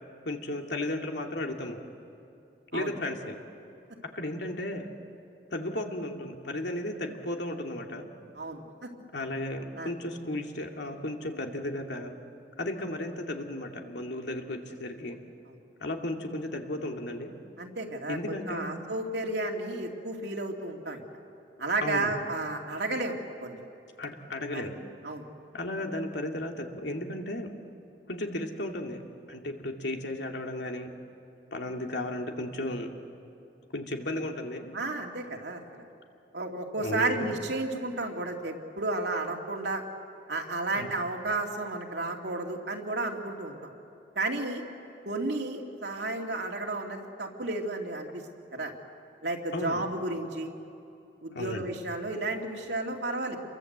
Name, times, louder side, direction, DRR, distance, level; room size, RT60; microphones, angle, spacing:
voice 1, 0.3-1.8 2.7-3.4 4.1-4.9 5.5-8.1 9.1-12.1 12.6-15.2 15.8-17.3 18.1-18.8 21.8-22.2 24.0-24.7 25.5-27.5 28.1-29.0 29.3-30.9 31.5-32.9 33.7-34.7 36.8-37.3 40.8-40.9 49.5-49.8 51.3-51.7, left 1 dB, 80° left, 2 dB, 2.4 m, -34 dB
voice 2, 8.3-8.9 9.7-9.9 17.6-21.0 21.6-23.6 24.5-24.7 25.0-25.3 34.7-35.9 36.3-39.8 40.3-43.7 44.2-44.6 45.0-48.2 48.5-48.7 49.2-50.5 51.2-53.4, right 2 dB, 75° right, 1 dB, 2.6 m, -32 dB
29.0 x 23.0 x 8.0 m, 2.7 s
head